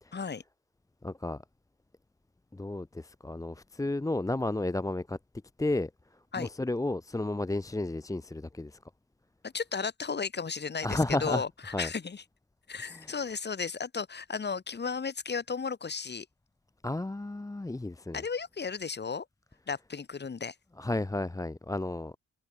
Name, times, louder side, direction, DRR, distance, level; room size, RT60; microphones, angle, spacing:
voice 1, 0.1-0.4 6.3-6.5 9.4-11.5 11.8-12.2 12.7-16.3 18.1-19.3 19.7-20.5, left 5 dB, 35° left, 3.8 m, -34 dB
voice 2, 1.0-1.4 2.5-5.2 5.6-8.8 10.8-11.4 11.7-11.9 12.8-13.2 16.8-18.2 20.8-22.2, left 2 dB, 10° left, 1.1 m, -32 dB
cardioid pair, 90°, 30 cm